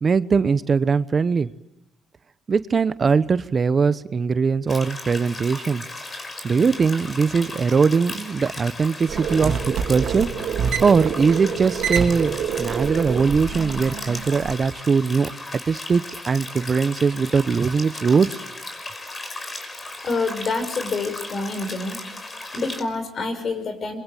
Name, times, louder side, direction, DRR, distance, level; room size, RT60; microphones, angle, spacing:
voice 1, 0.0-1.5 2.5-5.8 6.4-10.3 10.8-18.4, right 5 dB, 40° right, 14 dB, 0.9 m, -21 dB
sound 1, 4.7-22.8, left 2 dB, 30° left, 5.5 m, -36 dB
sound 2, 9.1-14.5, right 7 dB, 75° right, 3.2 m, -27 dB
voice 2, 20.0-22.0 22.5-24.0, left 3 dB, 50° left, 9 dB, 5.9 m, -27 dB
27.0 x 23.5 x 9.0 m, 0.89 s
cardioid pair, 90°, 0 cm